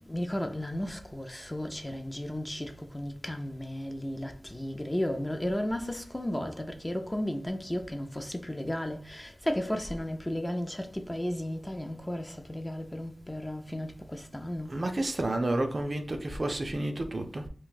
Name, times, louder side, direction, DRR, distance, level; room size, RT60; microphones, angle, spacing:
voice 1, 0.0-14.7, left 1 dB, 15° left, 0.4 m, -34 dB
voice 2, 14.7-17.5, right 1 dB, 45° right, 0.4 m, -30 dB
2.5 x 2.2 x 3.9 m
wide cardioid pair, 70°, 0 cm